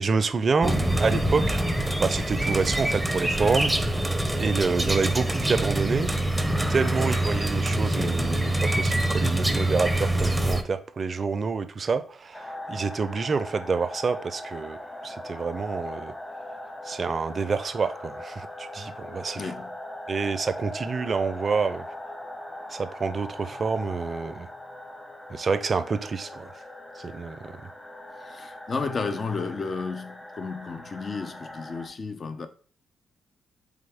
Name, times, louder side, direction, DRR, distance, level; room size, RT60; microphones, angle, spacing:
voice 1, 0.0-1.6 2.0-4.1 4.3-6.1 6.7-14.8 15.0-16.1 16.8-19.5 20.1-21.9 22.7-24.5 25.3-26.5 27.0-27.6, right 4 dB, 50° right, 0.5 m, -27 dB
sound 1, 0.6-10.6, right 1 dB, 5° right, 0.6 m, -25 dB
sound 2, 12.3-31.9, left 1 dB, 20° left, 1.1 m, -40 dB
voice 2, 19.4-19.8 28.2-32.5, left 4 dB, 50° left, 0.6 m, -32 dB
4.2 x 3.6 x 3.4 m
hypercardioid pair, 45°, 0 cm